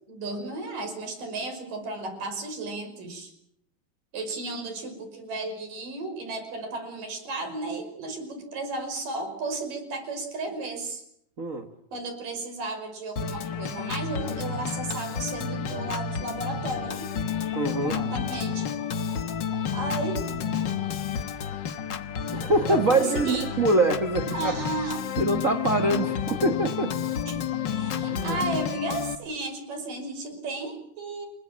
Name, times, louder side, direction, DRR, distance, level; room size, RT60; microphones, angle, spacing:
voice 1, 0.1-3.3 4.1-11.0 11.9-17.1 17.8-18.7 19.7-20.2 22.7-23.5 24.3-25.2 27.3-31.3, right 2 dB, 70° right, 6 dB, 7.1 m, -34 dB
Organ, 13.2-29.2, left 7 dB, 65° left, 1.1 m, -30 dB
voice 2, 17.5-17.9 22.3-24.6 25.2-26.9 28.1-28.4, right 2 dB, 85° right, 8 dB, 0.7 m, -24 dB
28.5 x 20.5 x 7.5 m, 0.71 s
omnidirectional pair, 3.9 m